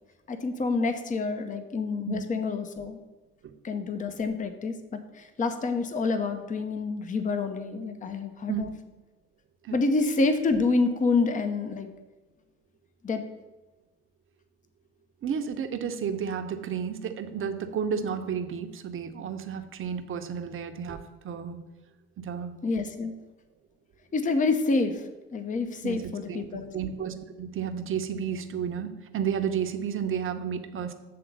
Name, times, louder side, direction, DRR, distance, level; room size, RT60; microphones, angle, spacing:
voice 1, 0.3-3.0 3.6-8.7 9.7-11.9 13.0-13.2 22.6-23.1 24.1-26.7, left 3 dB, 25° left, 8 dB, 0.8 m, -28 dB
voice 2, 15.2-21.6 22.2-22.5 25.8-26.5 26.7-30.9, right 7 dB, 40° right, 7 dB, 0.9 m, -32 dB
7.8 x 3.8 x 6.7 m, 1.1 s
hypercardioid pair, 60°, 33 cm